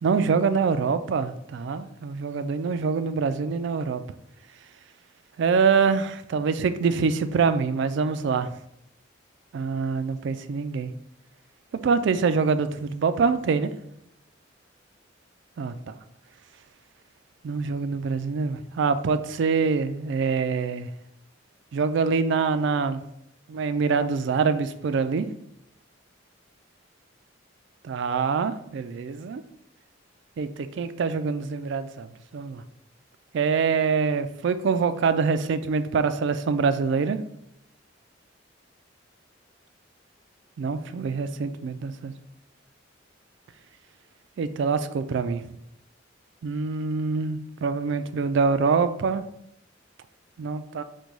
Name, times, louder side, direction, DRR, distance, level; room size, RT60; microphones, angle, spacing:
voice 1, 0.0-4.0 5.4-8.5 9.5-10.9 11.7-13.7 15.6-15.9 17.4-20.9 21.7-23.0 23.5-25.3 27.8-29.4 30.4-32.1 32.3-32.6 33.3-37.2 40.6-42.1 44.4-45.4 46.4-49.2 50.4-50.8, right 5 dB, 65° right, 11 dB, 0.3 m, -25 dB
5.2 x 2.2 x 4.6 m, 0.76 s
head